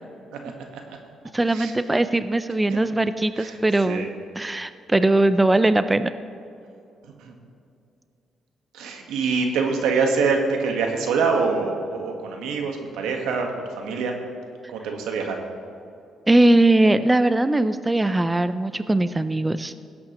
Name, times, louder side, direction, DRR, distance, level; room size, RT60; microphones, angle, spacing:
voice 1, 0.3-1.0 1.5-1.7 3.4-3.6 3.9-4.1 7.0-7.3 8.7-13.5 13.8-14.1 14.7-15.4, right 4 dB, 90° right, 3 dB, 1.3 m, -25 dB
voice 2, 1.3-4.1 4.4-6.1 16.3-19.7, right 2 dB, 15° right, 12 dB, 0.4 m, -20 dB
16.5 x 8.5 x 3.0 m, 2.5 s
cardioid pair, 90°, 0 cm